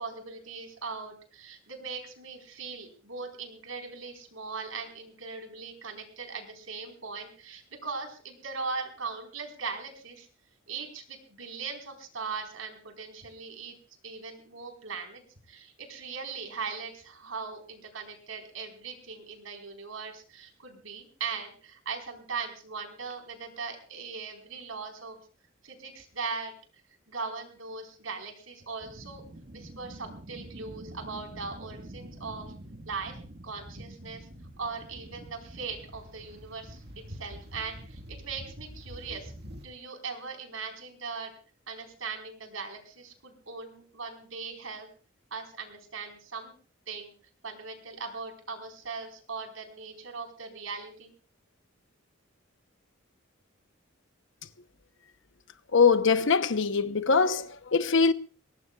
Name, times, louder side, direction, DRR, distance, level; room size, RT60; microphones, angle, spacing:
voice 1, 0.0-10.3 10.7-13.8 14.0-15.2 15.5-25.2 25.6-26.5 27.1-29.2 29.5-32.5 32.8-34.3 34.6-39.3 39.6-41.3 41.7-44.9 45.3-46.5 46.9-47.1 47.4-51.1, right 4 dB, 85° right, 4.4 m, -39 dB
sound 1, 28.8-39.7, right 1 dB, 55° right, 1.7 m, -46 dB
voice 2, 55.7-58.1, left 5 dB, 65° left, 0.9 m, -23 dB
23.0 x 19.0 x 2.4 m
head